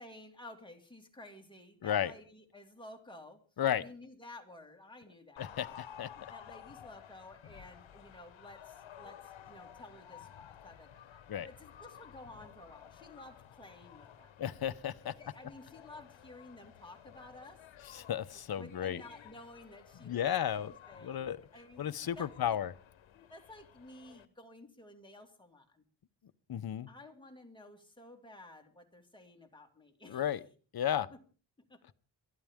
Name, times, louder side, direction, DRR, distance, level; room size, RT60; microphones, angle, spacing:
voice 1, 0.0-3.4 3.8-5.8 6.2-14.3 15.0-17.6 18.3-22.6 23.1-25.8 26.9-30.3 31.1-31.2 31.7-31.9, left 1 dB, 10° left, 2 dB, 2.2 m, -53 dB
sound 1, 5.4-24.3, left 9 dB, 80° left, 1.0 m, -54 dB
voice 2, 5.4-6.1 11.3-11.5 14.4-15.1 17.9-19.0 20.0-20.7 21.0-21.4 21.8-22.7 26.5-26.9 30.1-30.4 30.7-31.1, left 10 dB, 55° left, 13 dB, 0.8 m, -33 dB
22.0 x 13.5 x 3.6 m, 0.38 s
wide cardioid pair, 145°, 45 cm